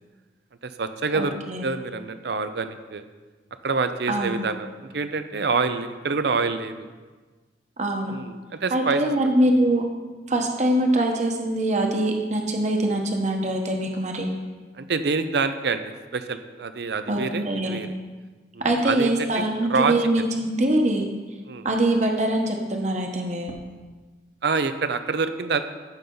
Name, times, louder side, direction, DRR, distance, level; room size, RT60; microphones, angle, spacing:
voice 1, 0.6-1.4 1.6-3.0 3.6-6.9 8.1-9.0 14.7-17.9 18.5-20.0 21.5-21.7 24.4-25.6, right 4 dB, 60° right, 10 dB, 0.6 m, -26 dB
voice 2, 1.1-1.6 4.1-4.3 7.8-8.1 8.7-9.8 10.3-14.3 17.1-17.8 18.6-21.1 21.6-23.5, right 1 dB, 40° right, 2 dB, 1.1 m, -23 dB
14.5 x 5.7 x 3.9 m, 1.3 s
head